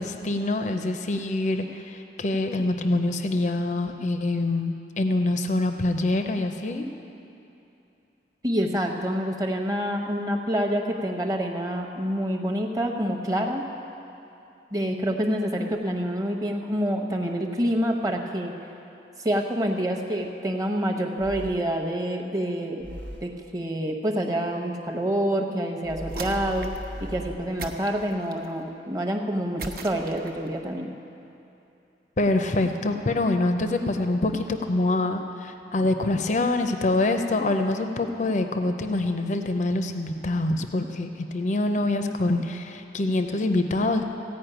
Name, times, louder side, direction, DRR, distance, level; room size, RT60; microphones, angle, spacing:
voice 1, 0.0-6.9 32.2-44.0, left 2 dB, 40° left, 6 dB, 0.5 m, -25 dB
voice 2, 8.4-13.7 14.7-18.5 19.2-22.9 23.2-26.7 27.1-30.9, equal, 20° right, 2 dB, 0.9 m, -27 dB
sound 1, 20.2-20.3 21.2-21.9 22.8-23.4 25.8-27.4, equal, 85° right, 1.1 m, -37 dB
sound 2, 26.1-26.9 27.6-28.5 29.6-30.5, right 3 dB, 55° right, 0.8 m, -38 dB
15.5 x 5.4 x 8.9 m, 2.8 s
head